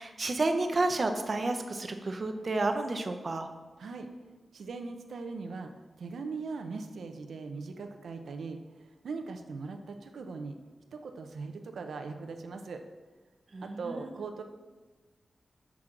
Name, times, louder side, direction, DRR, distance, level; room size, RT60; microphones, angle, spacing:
voice 1, 0.0-3.5 13.5-14.1, right 2 dB, 40° right, 6 dB, 0.6 m, -31 dB
voice 2, 3.8-4.1 4.5-5.7 6.0-10.6 10.9-12.8 13.6-14.4, right 4 dB, 85° right, 5 dB, 0.5 m, -40 dB
6.1 x 5.8 x 3.8 m, 1.3 s
wide cardioid pair, 105°, 0 cm